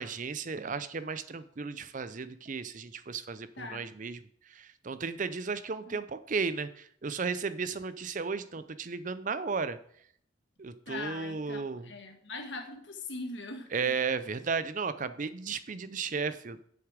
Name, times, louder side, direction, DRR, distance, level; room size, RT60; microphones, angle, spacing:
voice 1, 0.0-4.2 4.5-9.8 10.6-11.9 13.7-16.7, right 5 dB, 40° right, 13 dB, 0.5 m, -34 dB
voice 2, 3.6-3.9 5.9-6.0 10.9-13.9, left 3 dB, 65° left, 5 dB, 1.5 m, -41 dB
7.9 x 7.0 x 4.9 m, 0.63 s
head